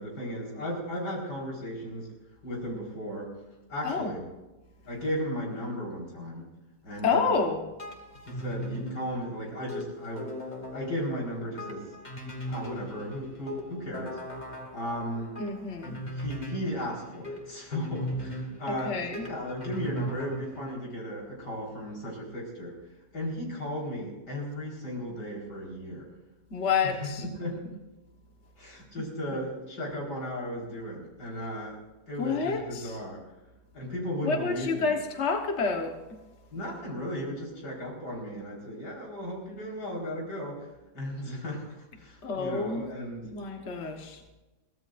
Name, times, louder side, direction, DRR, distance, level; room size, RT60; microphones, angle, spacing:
voice 1, 0.0-2.1 2.4-3.3 3.7-4.2 4.9-6.5 6.8-7.5 8.3-10.3 10.7-11.9 12.4-14.2 14.7-15.3 16.0-22.8 23.1-26.1 26.8-27.8 28.6-31.8 32.1-33.2 33.7-34.9 36.5-40.7 40.9-43.3, equal, 90° left, -3 dB, 5.2 m, -35 dB
voice 2, 7.0-7.6 15.4-16.0 18.7-19.3 26.5-27.2 32.2-32.9 34.2-36.2 42.2-42.8 43.2-44.2, left 5 dB, 45° left, 3 dB, 1.6 m, -29 dB
sound 1, 7.8-20.7, equal, 25° left, 2.1 m, -39 dB
22.5 x 16.5 x 2.6 m, 1.1 s
omnidirectional pair, 1.8 m